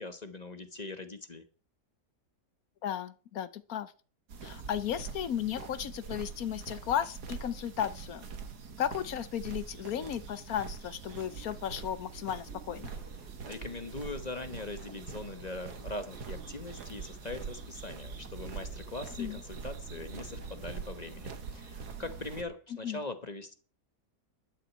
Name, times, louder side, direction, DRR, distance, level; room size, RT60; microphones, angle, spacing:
voice 1, 0.0-1.4 13.2-23.5, left 2 dB, 30° left, 1.1 m, -41 dB
voice 2, 2.8-3.9 4.4-8.2 8.8-12.9 19.2-19.4 22.8-23.0, left 10 dB, 70° left, 1.2 m, -35 dB
sound 1, 4.3-22.4, right 5 dB, 80° right, 2.2 m, -44 dB
Clapping, 9.1-9.3 11.1-11.2 12.9-13.0 14.8-14.9 16.6-16.8 18.5-18.6 20.4-20.5 22.3-22.4, right 2 dB, 65° right, 5.8 m, -58 dB
sound 2, 11.0-22.3, right 4 dB, 35° right, 2.2 m, -57 dB
12.0 x 6.4 x 8.4 m
omnidirectional pair, 1.7 m